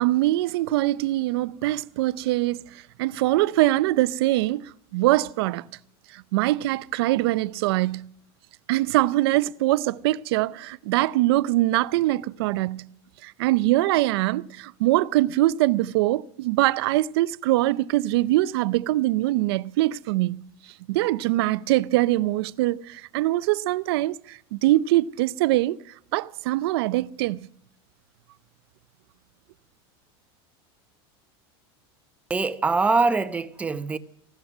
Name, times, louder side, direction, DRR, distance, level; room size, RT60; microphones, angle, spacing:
voice 1, 0.0-2.6 3.0-5.7 6.1-8.0 8.7-12.8 13.2-20.4 20.9-25.8 26.1-27.4, right 17 dB, 70° right, 0.5 m, -23 dB
voice 2, 32.3-34.0, right 3 dB, 10° right, 0.7 m, -23 dB
16.0 x 13.0 x 6.1 m
supercardioid pair, 150°, 13 cm